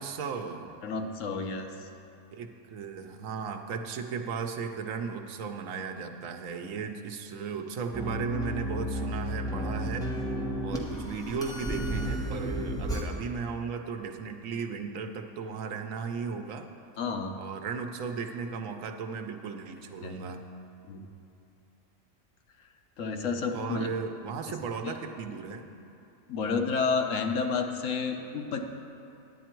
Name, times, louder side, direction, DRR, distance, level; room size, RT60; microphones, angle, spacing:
voice 1, 0.0-0.8 2.3-10.2 10.6-16.7 17.4-20.4 23.5-25.7, right 5 dB, 75° right, 6 dB, 1.1 m, -36 dB
voice 2, 0.8-1.7 17.0-17.3 20.0-20.2 20.9-21.0 23.0-23.9 24.8-24.9 26.3-28.6, left 4 dB, 70° left, 4 dB, 1.1 m, -30 dB
sound 1, 7.9-13.0, equal, 5° left, 0.9 m, -32 dB
10.0 x 9.2 x 4.5 m, 2.9 s
omnidirectional pair, 1.4 m